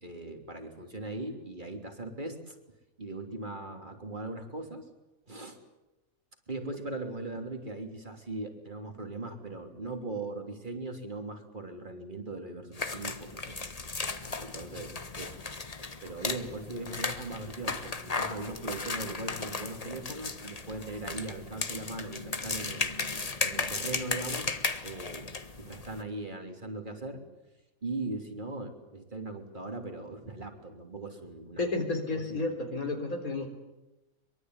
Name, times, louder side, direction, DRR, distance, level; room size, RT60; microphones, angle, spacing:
voice 1, 0.0-2.6 3.0-4.9 5.3-5.6 6.5-13.6 14.4-15.4 15.8-22.9 23.4-24.5 24.8-25.3 25.6-27.2 27.8-31.7 32.1-32.5, right 2 dB, 35° right, 5 dB, 3.4 m, -39 dB
sound 1, 12.7-26.0, left 3 dB, 30° left, 1.3 m, -35 dB
voice 2, 31.6-33.5, left 3 dB, 85° left, 3 dB, 4.2 m, -31 dB
23.5 x 23.5 x 9.6 m, 1.0 s
omnidirectional pair, 1.5 m